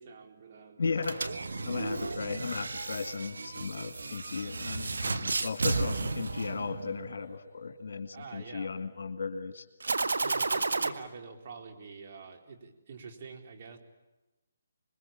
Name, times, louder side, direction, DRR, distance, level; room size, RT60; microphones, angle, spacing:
voice 1, 0.0-1.0 1.6-1.9 8.1-8.7 10.2-13.8, right 5 dB, 45° right, 4 dB, 4.2 m, -46 dB
voice 2, 0.8-9.6, left 4 dB, 65° left, 6 dB, 2.1 m, -36 dB
sound 1, 1.0-7.1 9.8-10.9, right 3 dB, 80° right, 1.7 m, -33 dB
26.5 x 21.5 x 8.9 m, 1.1 s
hypercardioid pair, 155°, 0 cm